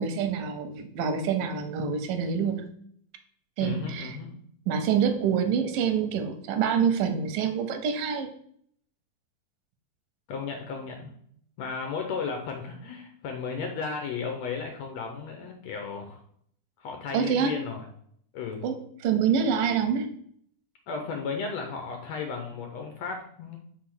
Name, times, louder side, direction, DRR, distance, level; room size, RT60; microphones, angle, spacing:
voice 1, 0.0-2.6 3.6-4.2 4.7-8.3 17.1-17.6 18.6-18.8 19.0-20.1, right 7 dB, 90° right, 8 dB, 2.5 m, -26 dB
voice 2, 3.6-4.4 10.3-11.1 11.6-16.2 16.8-17.9 18.3-18.7 20.9-23.6, left 5 dB, 70° left, 3 dB, 1.7 m, -34 dB
5.2 x 4.2 x 6.0 m, 0.65 s
omnidirectional pair, 3.8 m